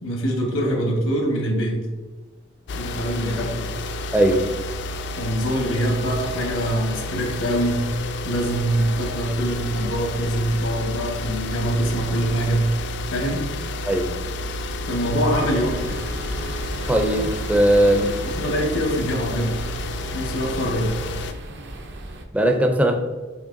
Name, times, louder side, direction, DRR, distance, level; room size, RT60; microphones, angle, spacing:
voice 1, 0.0-1.8 2.7-3.6 5.2-7.9 8.2-12.7 13.1-13.4 14.9-16.0 18.2-19.6 20.1-20.9, right 1 dB, 80° left, 1 dB, 1.1 m, -24 dB
sound 1, 2.7-21.3, left 2 dB, 60° left, 0.3 m, -31 dB
voice 2, 4.1-4.5 13.8-14.1 16.9-18.2 22.3-22.9, right 1 dB, 5° right, 3 dB, 0.4 m, -18 dB
sound 2, 15.6-22.3, right 1 dB, 60° right, 0.5 m, -36 dB
6.3 x 3.2 x 2.5 m, 1.3 s
head